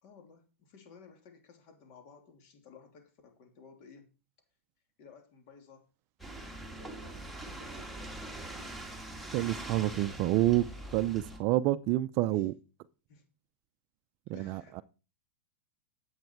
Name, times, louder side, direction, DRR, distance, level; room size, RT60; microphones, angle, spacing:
voice 1, 0.0-4.1 5.0-5.9 6.7-8.0 8.6-8.9 12.3-12.5 13.1-13.2 14.3-14.8, left 5 dB, 45° left, 3.1 m, -56 dB
sound 1, 6.2-11.4, right 1 dB, ahead, 2.0 m, -43 dB
voice 2, 9.3-10.7 10.9-12.5 14.3-14.8, right 15 dB, 40° right, 0.5 m, -28 dB
10.5 x 8.2 x 4.6 m
hypercardioid pair, 135°, 7 cm